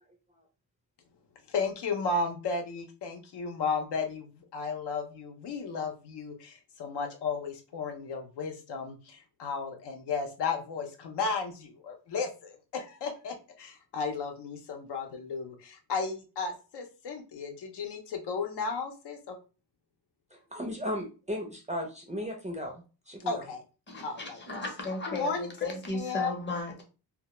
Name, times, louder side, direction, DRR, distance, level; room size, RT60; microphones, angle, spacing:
voice 1, 1.5-19.4 23.3-23.6 24.0-24.4 25.1-26.3, left 4 dB, 80° left, 0.6 m, -34 dB
voice 2, 20.3-23.5, equal, 20° right, 0.4 m, -36 dB
voice 3, 23.9-26.8, left 2 dB, 25° left, 0.7 m, -35 dB
2.2 x 2.1 x 2.9 m
wide cardioid pair, 130°, 41 cm